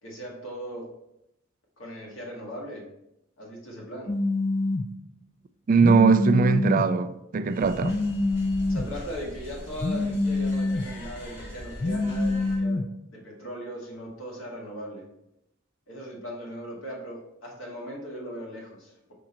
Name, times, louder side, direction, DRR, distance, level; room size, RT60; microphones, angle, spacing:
voice 1, 0.0-0.9 1.8-2.8 3.4-4.1 8.7-12.8 13.1-15.0 15.9-19.1, equal, 80° left, 1.9 m, -38 dB
Telephone, 4.1-4.9 5.8-6.8 7.8-8.9 9.8-10.9 11.8-12.8, left 2 dB, 35° left, 0.4 m, -26 dB
voice 2, 5.7-8.0, right 5 dB, 45° right, 0.3 m, -20 dB
sound 1, 7.5-12.6, equal, 60° left, 1.8 m, -41 dB
6.2 x 3.7 x 4.4 m
head